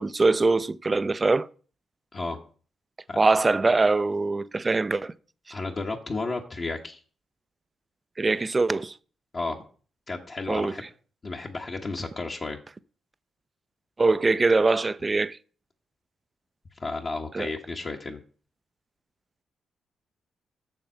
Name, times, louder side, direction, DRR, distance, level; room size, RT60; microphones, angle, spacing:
voice 1, 0.0-1.5 3.2-5.1 8.2-8.9 10.5-10.7 14.0-15.4 17.3-17.5, right 3 dB, 30° right, 0.5 m, -23 dB
voice 2, 5.5-7.0 9.3-9.6 10.1-10.8 11.2-12.6 16.8-18.2, left 3 dB, 45° left, 1.2 m, -32 dB
7.1 x 6.7 x 5.6 m
supercardioid pair, 65°, 0 cm